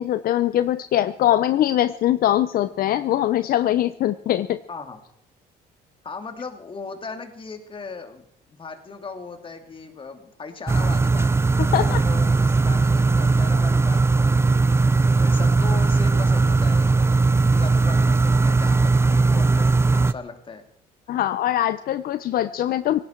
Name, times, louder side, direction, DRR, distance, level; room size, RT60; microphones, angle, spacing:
voice 1, 0.0-4.6 11.7-12.0 21.1-23.0, left 12 dB, 60° left, 13 dB, 0.7 m, -22 dB
voice 2, 4.7-5.0 6.0-14.6 15.2-20.6 21.1-21.2, left 4 dB, 30° left, 6 dB, 2.9 m, -38 dB
sound 1, 10.7-20.1, right 3 dB, 15° right, 0.6 m, -19 dB
18.5 x 17.0 x 4.6 m, 0.72 s
cardioid pair, 110°, 17 cm